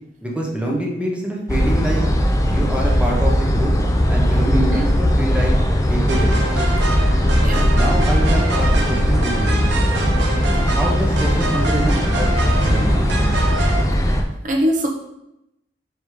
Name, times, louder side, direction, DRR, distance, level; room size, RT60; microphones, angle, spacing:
voice 1, 0.2-2.0 2.5-3.7 4.1-5.5 5.8-6.4 7.7-9.7 10.4-12.3 12.6-13.1, right 1 dB, 5° right, -2 dB, 1.0 m, -25 dB
sound 1, 1.5-14.2, equal, 20° left, 0.6 m, -18 dB
voice 2, 4.5-4.8 7.4-7.7 14.4-14.9, equal, 45° right, 0 dB, 1.0 m, -21 dB
sound 2, 6.1-13.8, right 2 dB, 75° right, 1.0 m, -26 dB
5.1 x 4.9 x 5.1 m, 0.84 s
head